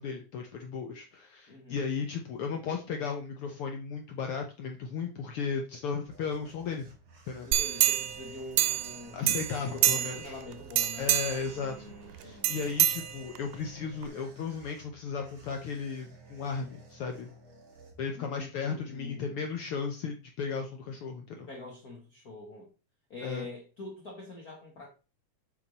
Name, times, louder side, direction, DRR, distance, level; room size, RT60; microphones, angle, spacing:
voice 1, 0.0-6.9 7.3-7.5 9.1-10.4 11.0-17.3 18.0-21.5 23.2-23.5, left 5 dB, 85° left, 1.2 m, -35 dB
voice 2, 1.5-1.8 7.5-11.1 11.5-12.7 18.1-19.4 21.3-22.7 23.1-24.9, left 2 dB, 45° left, 1.3 m, -45 dB
sound 1, 5.6-18.5, right 2 dB, 55° right, 3.5 m, -55 dB
sound 2, 7.5-9.0 9.3-10.3 10.7-11.5 12.4-13.5 14.0-14.1, right 13 dB, 85° right, 2.2 m, -27 dB
8.5 x 5.1 x 4.0 m
omnidirectional pair, 3.6 m